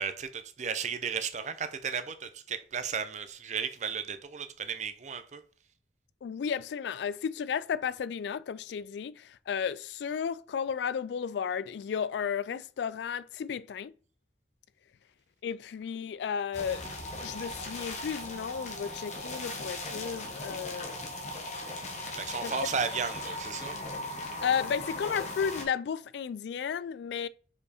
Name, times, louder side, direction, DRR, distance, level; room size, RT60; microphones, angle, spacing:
voice 1, 0.0-5.4 22.2-23.8, right 6 dB, 40° right, 0.6 m, -34 dB
voice 2, 6.2-13.9 15.4-16.9 17.2-21.0 22.4-22.5 24.4-27.3, left 7 dB, 75° left, 0.3 m, -33 dB
sound 1, 16.5-25.6, left 1 dB, 40° left, 1.3 m, -38 dB
5.2 x 4.7 x 4.2 m
head